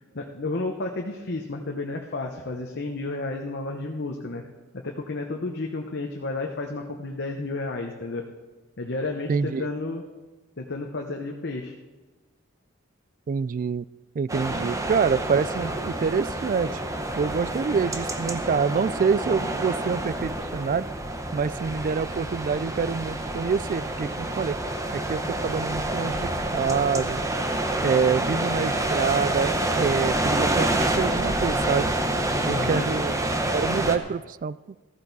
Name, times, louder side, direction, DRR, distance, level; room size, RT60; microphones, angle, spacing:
voice 1, 0.1-4.4 4.7-8.3 8.8-10.0 10.6-11.7 32.4-32.9, left 2 dB, 55° left, 2 dB, 1.0 m, -31 dB
voice 2, 9.3-9.6 13.3-13.8 14.2-16.7 17.2-20.8 21.3-24.6 24.9-27.2 27.8-31.9 32.4-33.1 33.5-34.6, right 5 dB, 40° right, 19 dB, 0.3 m, -26 dB
sound 1, 14.3-34.0, right 1 dB, 15° right, 0.9 m, -27 dB
14.5 x 14.0 x 4.1 m, 1.3 s
head